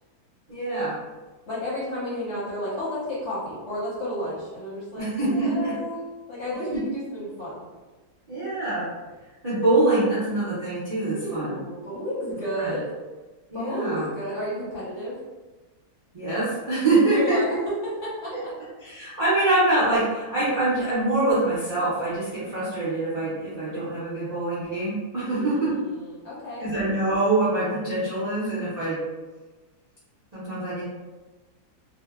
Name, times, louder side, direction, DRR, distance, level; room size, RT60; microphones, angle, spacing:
voice 1, 0.5-0.9 5.0-5.7 6.7-6.8 8.3-8.9 9.4-11.5 12.6-12.7 13.5-14.1 16.1-17.6 18.8-25.7 26.6-29.0 30.3-30.8, right 2 dB, 75° right, -10 dB, 0.3 m, -24 dB
voice 2, 1.5-6.0 6.3-7.7 11.0-12.9 13.5-15.1 17.1-18.3 25.2-26.7, equal, 55° left, -8 dB, 0.8 m, -32 dB
2.7 x 2.1 x 2.3 m, 1.2 s
omnidirectional pair, 1.8 m